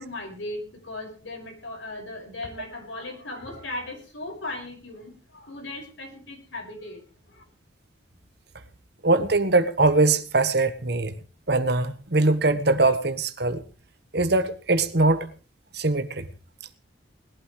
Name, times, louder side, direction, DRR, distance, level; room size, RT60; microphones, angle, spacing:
voice 1, 0.0-7.4, left 2 dB, 90° left, 5.8 m, -37 dB
voice 2, 9.0-11.1 11.5-13.6 14.1-15.3 15.7-16.3, right 2 dB, 60° right, 1.3 m, -22 dB
20.5 x 12.0 x 3.2 m
head